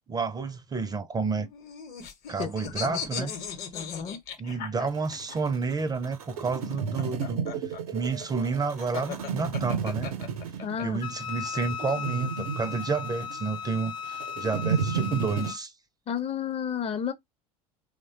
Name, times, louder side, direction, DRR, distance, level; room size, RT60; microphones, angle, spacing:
voice 1, 0.1-1.5 2.3-3.3 4.4-7.4 7.9-10.1 10.8-15.7, right 4 dB, 20° right, 0.4 m, -30 dB
sound 1, 1.3-5.4 6.6-10.8, left 7 dB, 55° left, 0.9 m, -38 dB
voice 2, 2.4-3.3 3.7-4.2 10.6-11.0 16.1-17.1, left 8 dB, 35° left, 0.5 m, -32 dB
sound 2, 4.9-15.5, right 6 dB, 85° right, 0.6 m, -33 dB
Wind instrument woodwind instrument, 11.0-15.6, left 7 dB, 80° left, 0.5 m, -37 dB
3.0 x 2.1 x 2.7 m
hypercardioid pair, 75°, 18 cm